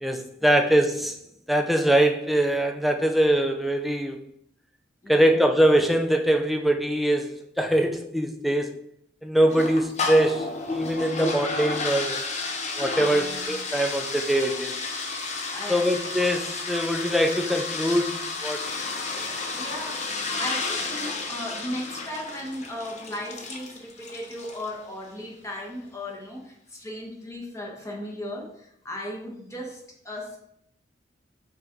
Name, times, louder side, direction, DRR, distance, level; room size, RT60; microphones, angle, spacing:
voice 1, 0.0-1.2 1.5-4.2 5.1-8.8 9.2-12.2 12.8-14.8 15.7-18.6, right 1 dB, ahead, 4 dB, 0.4 m, -23 dB
voice 2, 5.0-5.5 9.4-9.8 10.8-10.9 11.2-11.3 12.9-13.5 15.5-16.1 19.1-30.4, left 1 dB, 15° left, -1 dB, 1.1 m, -37 dB
sound 1, 9.5-24.8, left 3 dB, 35° left, 0.7 m, -32 dB
5.7 x 4.6 x 3.8 m, 0.74 s
head